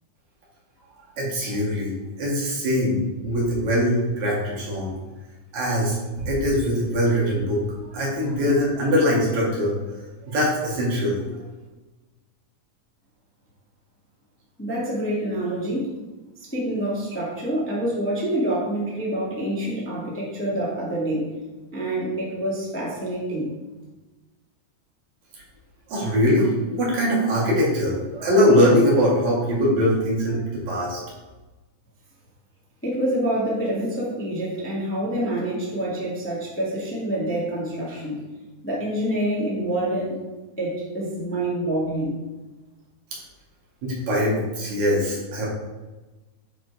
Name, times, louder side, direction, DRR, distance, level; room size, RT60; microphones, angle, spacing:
voice 1, 1.2-1.9 2.2-4.9 5.5-11.2 25.3-25.4 25.9-31.0 43.8-45.5, equal, 65° right, -5 dB, 3.5 m, -22 dB
voice 2, 14.6-15.9 16.4-21.3 21.7-23.5 32.8-38.2 38.6-40.2 40.6-42.2, right 1 dB, 5° left, -6 dB, 1.5 m, -26 dB
9.0 x 5.0 x 4.8 m, 1.2 s
omnidirectional pair, 3.6 m